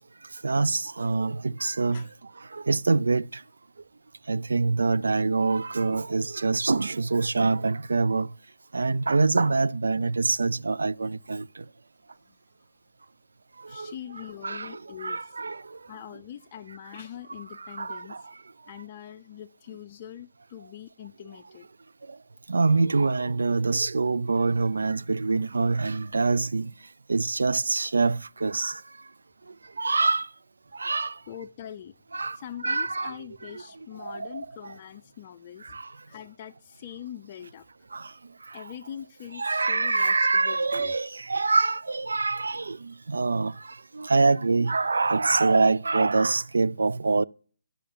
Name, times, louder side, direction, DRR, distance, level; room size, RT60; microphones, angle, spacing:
voice 1, 0.4-2.0 2.5-3.4 4.3-8.3 8.7-11.6 13.6-13.9 14.4-15.8 17.6-18.2 22.5-26.7 27.1-28.8 29.8-30.3 30.7-31.2 32.1-32.4 32.6-33.1 34.0-34.4 35.6-35.9 37.9-38.1 38.5-38.6 39.4-47.2, right 3 dB, 90° right, 0.3 m, -25 dB
voice 2, 13.7-15.2 15.9-18.2 18.7-21.7 31.3-32.0 32.3-35.8 36.1-37.6 38.5-41.0, left 10 dB, 30° left, 0.5 m, -43 dB
11.0 x 5.7 x 5.2 m
hypercardioid pair, 160°, 0 cm